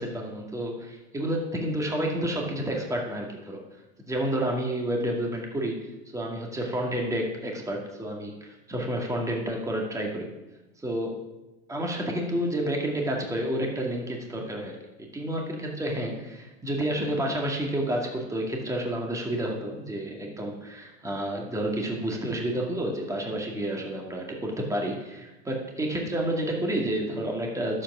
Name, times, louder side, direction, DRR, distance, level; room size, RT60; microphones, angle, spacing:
voice 1, 0.0-3.6 4.1-10.3 10.8-11.2 11.7-14.8 15.1-27.8, right 1 dB, 10° right, 0 dB, 2.1 m, -30 dB
11.5 x 7.8 x 6.2 m, 1.0 s
hypercardioid pair, 95°, 34 cm